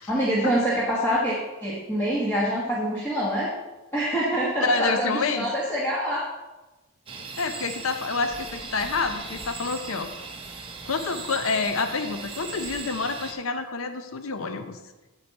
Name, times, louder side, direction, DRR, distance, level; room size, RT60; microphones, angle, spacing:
voice 1, 0.1-3.5 3.9-6.2, equal, 10° left, -7 dB, 1.4 m, -25 dB
voice 2, 4.6-5.5 7.4-10.1 10.8-14.8, left 4 dB, 70° left, 8 dB, 0.6 m, -28 dB
sound 1, 7.1-13.3, right 4 dB, 25° right, 0.8 m, -38 dB
8.2 x 7.8 x 4.1 m, 1.1 s
head